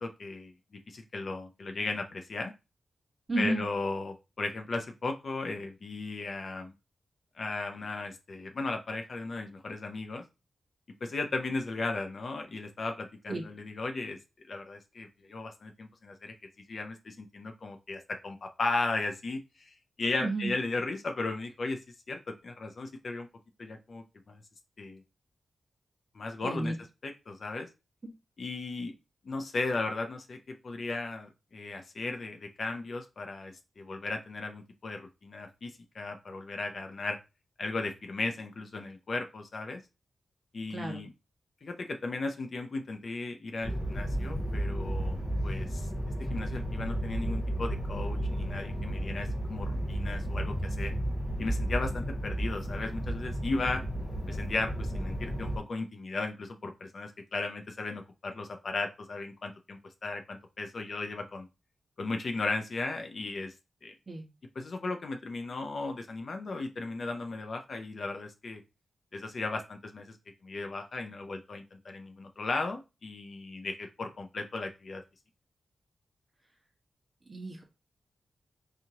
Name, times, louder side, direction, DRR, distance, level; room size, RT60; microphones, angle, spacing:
voice 1, 0.0-0.5 0.9-2.5 3.4-6.7 7.4-10.2 11.0-14.2 14.5-16.3 16.7-21.8 22.1-23.3 23.6-24.4 24.8-25.0 26.1-26.7 27.0-27.7 28.4-28.9 29.2-37.2 37.6-39.8 40.5-41.1 41.6-45.9 46.3-50.9 51.4-53.8 54.3-61.5 62.0-63.5 63.8-63.9 64.6-68.6 69.1-70.2 70.4-75.0, left 3 dB, 45° left, 5 dB, 0.5 m, -36 dB
voice 2, 3.3-3.6 13.3-13.4 20.2-20.5 26.4-26.7 40.7-41.0 64.1-64.2 77.3-77.6, right 2 dB, 25° right, 1 dB, 1.1 m, -32 dB
sound 1, 43.6-55.6, right 1 dB, 30° left, 1.8 m, -33 dB
4.8 x 2.8 x 2.8 m, 0.27 s
wide cardioid pair, 175°, 0 cm